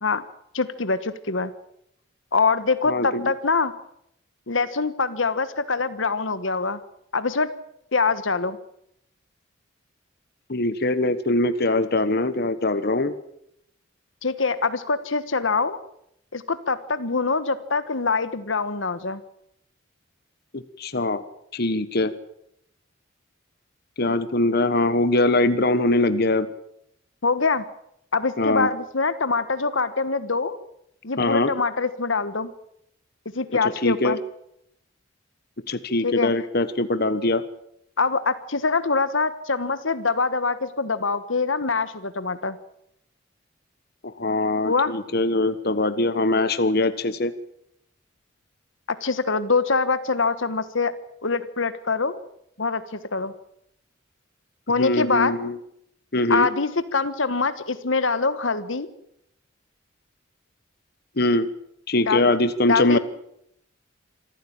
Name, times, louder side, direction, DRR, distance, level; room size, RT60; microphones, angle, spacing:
voice 1, 0.5-1.5 2.3-3.7 4.5-6.8 7.1-7.5 7.9-8.6 14.2-15.8 16.3-19.2 27.2-27.6 28.1-30.6 31.0-32.5 33.3-34.2 36.0-36.3 38.0-42.6 44.7-44.9 49.0-50.9 51.2-52.2 52.6-53.3 54.7-55.4 56.3-58.9 62.1-62.3 62.7-63.0, left 4 dB, 70° left, 13 dB, 1.3 m, -24 dB
voice 2, 2.9-3.3 10.5-13.1 20.5-21.2 21.5-22.1 24.0-26.5 28.4-28.7 31.2-31.5 33.8-34.2 35.7-37.4 44.0-47.3 54.8-55.6 56.1-56.5 61.2-61.5 61.9-63.0, left 2 dB, 50° left, 12 dB, 1.3 m, -22 dB
26.0 x 14.5 x 8.8 m, 0.75 s
head